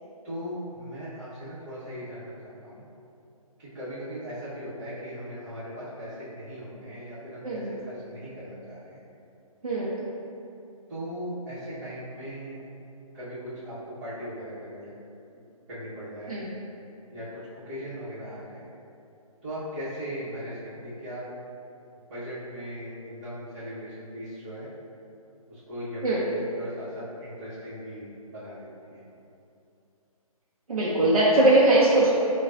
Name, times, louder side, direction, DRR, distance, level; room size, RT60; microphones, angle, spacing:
voice 1, 0.2-2.8 3.6-9.0 10.9-12.6 13.1-14.9 15.3-15.4 15.7-16.4 17.1-18.7 19.4-21.2 22.1-24.7 25.5-29.0, equal, 30° right, -13 dB, 1.1 m, -38 dB
voice 2, 30.7-32.1, right 1 dB, 70° right, -7 dB, 0.7 m, -20 dB
6.4 x 2.3 x 2.5 m, 2.7 s
figure-of-eight pair, 140°, 19 cm